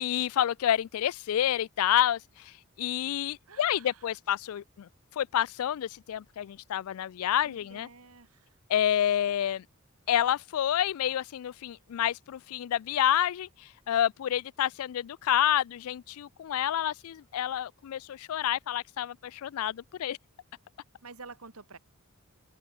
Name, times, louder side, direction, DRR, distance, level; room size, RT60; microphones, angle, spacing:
voice 1, 0.0-7.9 8.7-9.6 10.1-20.2, left 11 dB, 80° left, 0.3 m, -29 dB
voice 2, 3.5-4.1 7.4-8.6 21.0-21.8, right 4 dB, 85° right, 2.5 m, -49 dB
head